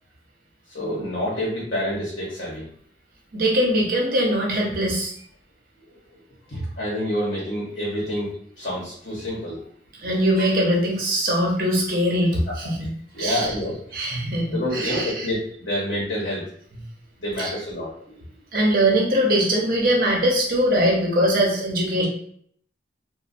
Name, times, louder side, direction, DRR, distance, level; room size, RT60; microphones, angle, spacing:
voice 1, 0.7-2.6 5.8-6.2 6.5-9.6 12.8-12.9 13.1-13.8 14.5-16.4 17.2-18.2, left 1 dB, 75° left, -7 dB, 0.9 m, -28 dB
voice 2, 3.3-5.1 10.0-12.9 13.2-13.5 13.9-15.3 17.4-17.5 18.5-22.1, right 1 dB, 50° right, -2 dB, 0.8 m, -21 dB
3.1 x 2.2 x 2.5 m, 0.62 s
head